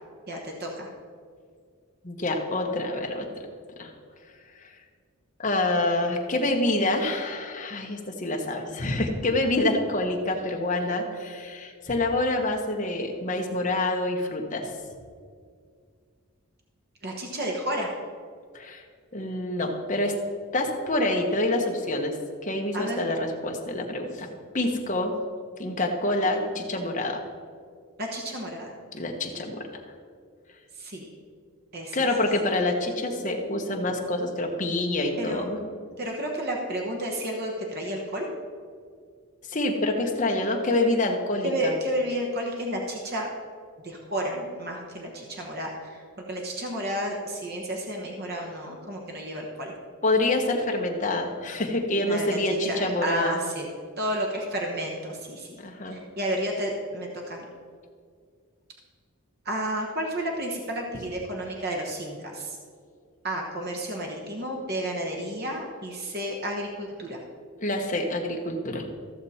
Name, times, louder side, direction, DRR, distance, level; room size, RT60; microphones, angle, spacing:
voice 1, 0.3-0.9 17.0-17.9 22.7-23.0 28.0-28.7 30.8-31.1 31.7-32.0 35.2-35.5 36.0-38.3 41.4-43.3 43.8-46.0 46.3-49.7 52.0-53.7 54.0-55.6 55.9-57.4 59.4-62.6 63.2-67.2, right 1 dB, 45° right, 0 dB, 1.1 m, -31 dB
voice 2, 2.0-3.3 3.8-3.9 4.6-4.7 5.4-14.7 18.5-18.8 19.1-20.1 20.5-22.1 22.4-24.3 24.5-25.1 25.6-27.2 28.9-29.6 31.9-35.6 39.5-41.7 50.0-53.4 55.6-56.0 67.6-68.9, left 2 dB, 35° left, 1 dB, 1.2 m, -27 dB
14.5 x 6.8 x 4.3 m, 2.1 s
head